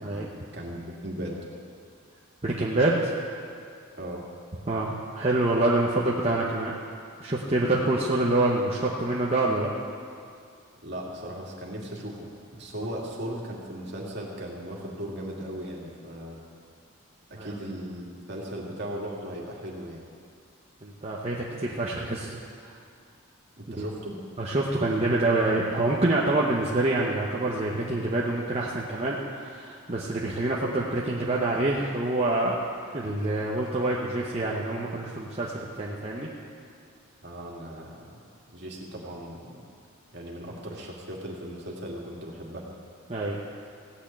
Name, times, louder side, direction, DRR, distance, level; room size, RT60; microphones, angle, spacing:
voice 1, 0.0-1.4 3.9-4.3 10.8-16.4 17.3-20.0 23.6-24.2 37.2-38.2 38.5-39.6 40.1-42.7, equal, 50° right, -3 dB, 2.2 m, -37 dB
voice 2, 2.4-3.1 4.7-6.7 7.2-9.7 17.4-17.5 20.8-22.4 22.6-22.7 23.8-23.9 24.4-32.6 32.9-36.3 43.1-43.4, right 2 dB, 30° right, -4 dB, 1.0 m, -26 dB
16.0 x 6.6 x 8.7 m, 2.3 s
head